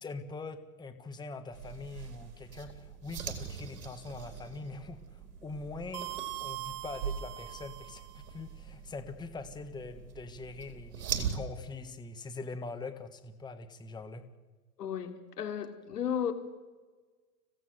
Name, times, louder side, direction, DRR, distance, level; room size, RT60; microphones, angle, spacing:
voice 1, 0.0-14.2, left 3 dB, 10° left, 8 dB, 1.4 m, -43 dB
sound 1, 1.5-11.4, right 8 dB, 60° right, 4.1 m, -41 dB
sound 2, 5.9-8.3, right 17 dB, 35° right, 0.6 m, -41 dB
voice 2, 14.8-16.3, left 8 dB, 80° left, 7 dB, 3.2 m, -34 dB
25.5 x 16.5 x 7.9 m, 1.3 s
hypercardioid pair, 120°, 47 cm